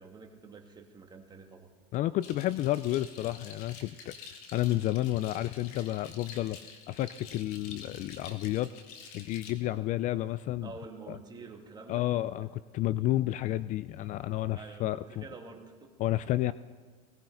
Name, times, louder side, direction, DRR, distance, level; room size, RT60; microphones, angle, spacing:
voice 1, 0.0-1.7 10.6-12.1 12.4-12.5 14.5-15.9, right 4 dB, 20° right, 3 dB, 1.9 m, -48 dB
voice 2, 1.9-6.6 6.9-8.7 9.1-10.7 11.1-11.2 11.9-15.2 16.0-16.5, left 15 dB, 40° left, 16 dB, 0.4 m, -31 dB
sound 1, 2.2-9.5, left 6 dB, 75° left, 2.2 m, -49 dB
18.5 x 18.5 x 3.9 m, 1.5 s
supercardioid pair, 120°, 19 cm